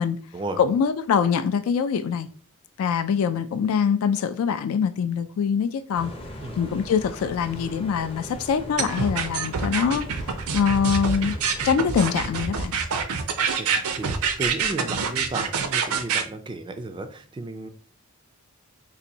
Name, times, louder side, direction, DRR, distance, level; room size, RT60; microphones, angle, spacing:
voice 1, 0.6-2.3 2.8-6.1 6.6-10.0 10.5-11.3 11.6-12.7, left 7 dB, 70° left, 0.3 m, -23 dB
sound 1, 5.9-12.4, equal, 25° left, 0.6 m, -40 dB
sound 2, 8.8-16.2, right 6 dB, 75° right, 0.5 m, -26 dB
voice 2, 13.6-17.7, right 2 dB, 20° right, 0.3 m, -34 dB
4.1 x 2.5 x 2.7 m
head